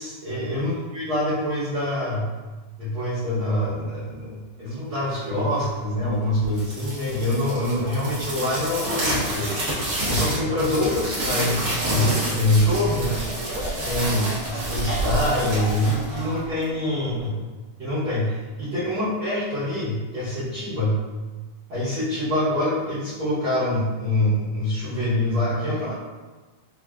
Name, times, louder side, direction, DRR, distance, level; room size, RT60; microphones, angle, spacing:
voice 1, 0.0-2.3 2.8-9.6 10.0-13.2 13.8-17.3 17.8-21.0 21.7-25.9, left 1 dB, 65° right, -12 dB, 1.3 m, -25 dB
sound 1, 6.4-16.8, right 1 dB, 80° right, 0.9 m, -28 dB
4.7 x 2.5 x 2.3 m, 1.3 s
omnidirectional pair, 3.5 m